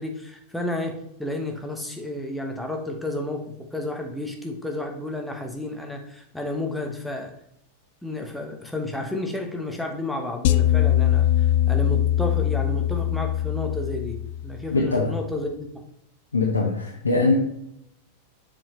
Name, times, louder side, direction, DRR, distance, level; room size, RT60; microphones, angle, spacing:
voice 1, 0.0-7.3 8.0-15.7, left 1 dB, 5° left, 2 dB, 1.2 m, -31 dB
sound 1, 10.4-14.8, left 12 dB, 50° left, 0.3 m, -22 dB
voice 2, 14.7-15.1 16.3-17.3, left 3 dB, 75° left, -2 dB, 1.1 m, -22 dB
7.2 x 5.1 x 3.2 m, 0.75 s
figure-of-eight pair, 90°, 0 cm